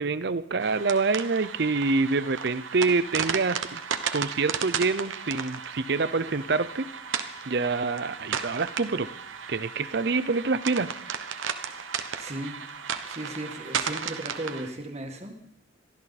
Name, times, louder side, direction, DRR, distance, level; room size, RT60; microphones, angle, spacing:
voice 1, 0.0-3.8 4.1-7.2 7.5-9.1 9.5-10.9, right 4 dB, 55° right, 15 dB, 0.6 m, -26 dB
sound 1, 0.6-14.7, right 6 dB, 75° right, 1.1 m, -34 dB
voice 2, 11.7-12.6 13.0-15.3, right 1 dB, 35° right, 3 dB, 1.9 m, -37 dB
22.5 x 14.0 x 4.2 m, 0.77 s
head